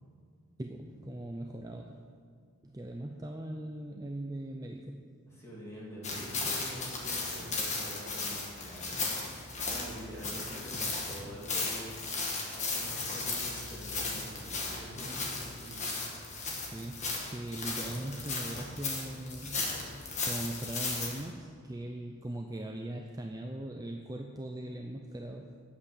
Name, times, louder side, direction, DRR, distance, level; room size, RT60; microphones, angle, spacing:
voice 1, 0.6-2.0 2.6-5.0 16.5-25.5, right 1 dB, 15° right, 2 dB, 0.5 m, -40 dB
voice 2, 5.3-9.2 9.7-12.0 12.5-16.1, equal, 15° left, -6 dB, 2.8 m, -46 dB
sound 1, 6.0-21.2, left 3 dB, 30° left, 1.7 m, -36 dB
10.0 x 8.5 x 6.9 m, 2.1 s
head